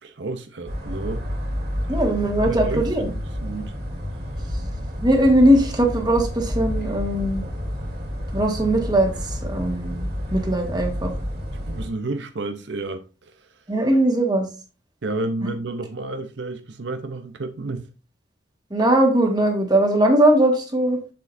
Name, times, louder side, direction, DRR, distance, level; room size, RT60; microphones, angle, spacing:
voice 1, 0.0-1.3 1.8-2.0 2.5-3.1 3.4-3.7 11.7-13.0 15.0-17.8, right 2 dB, 75° right, 0.7 m, -30 dB
sound 1, 0.6-11.9, equal, 60° right, 3.5 m, -29 dB
voice 2, 1.9-3.1 5.0-7.4 8.3-10.0 10.3-11.1 13.7-14.4 15.4-15.5 18.7-21.0, right 1 dB, 25° right, 1.7 m, -19 dB
7.6 x 7.1 x 2.6 m
head